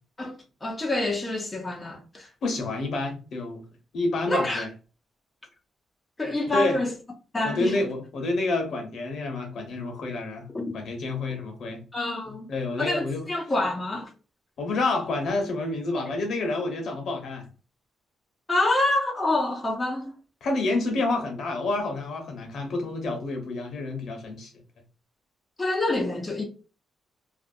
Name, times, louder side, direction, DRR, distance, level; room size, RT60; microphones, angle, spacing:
voice 1, 0.2-2.3 4.3-4.7 6.2-6.9 7.3-7.8 10.5-10.8 11.9-12.5 12.8-14.1 18.5-20.1 25.6-26.4, left 2 dB, 20° left, 0.5 m, -27 dB
voice 2, 2.4-3.6 3.9-4.7 6.5-6.8 7.4-10.5 10.7-11.8 12.5-13.3 14.6-17.5 20.4-24.5, left 2 dB, 65° left, 0.9 m, -28 dB
2.5 x 2.1 x 2.5 m
cardioid pair, 135°, 0 cm